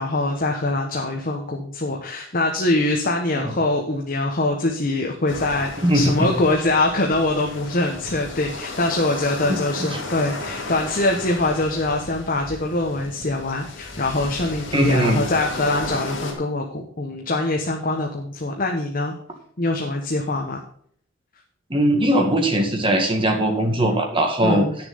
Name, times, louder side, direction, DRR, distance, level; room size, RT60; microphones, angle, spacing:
voice 1, 0.0-19.1 19.6-20.6 24.4-24.8, left 2 dB, 45° left, 2 dB, 1.1 m, -23 dB
sound 1, 5.3-16.3, left 2 dB, 65° left, 2.5 m, -34 dB
voice 2, 5.8-6.3 9.5-9.6 9.9-10.0 14.7-15.2 21.7-24.7, right 1 dB, 25° right, 3 dB, 1.8 m, -19 dB
9.8 x 6.8 x 5.4 m, 0.62 s
head